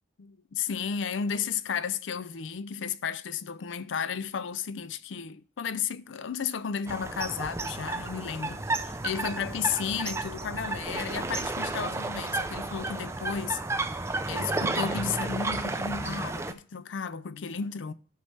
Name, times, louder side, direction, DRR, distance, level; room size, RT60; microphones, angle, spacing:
voice 1, 0.2-17.9, left 7 dB, 75° left, 0.5 m, -33 dB
sound 1, 6.9-16.5, right 2 dB, 15° right, 0.4 m, -32 dB
13.0 x 5.5 x 3.3 m
head